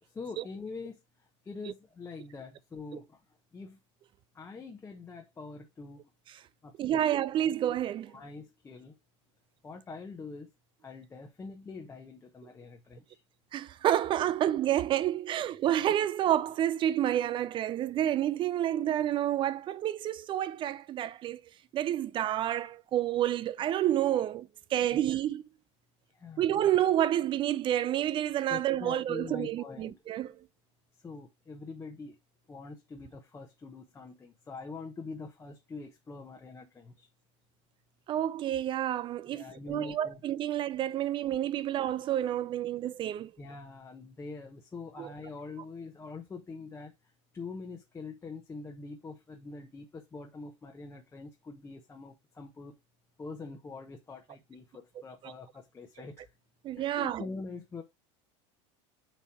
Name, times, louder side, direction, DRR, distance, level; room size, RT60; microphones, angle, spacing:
voice 1, 0.0-3.2 3.5-3.8 4.3-6.0 6.6-7.0 8.1-9.0 9.6-10.5 10.8-13.2 15.3-15.4 24.9-25.2 26.1-26.4 28.5-30.0 31.0-32.2 32.5-37.1 39.3-40.2 43.4-52.7 53.2-56.3 56.8-57.8, left 4 dB, 15° left, 0.9 m, -44 dB
voice 2, 6.8-8.1 13.5-21.4 21.7-25.4 26.4-30.3 38.1-43.3 45.0-45.1 55.2-55.3 56.6-57.2, right 11 dB, 30° right, 0.4 m, -29 dB
7.1 x 3.2 x 4.3 m
supercardioid pair, 130°, 15 cm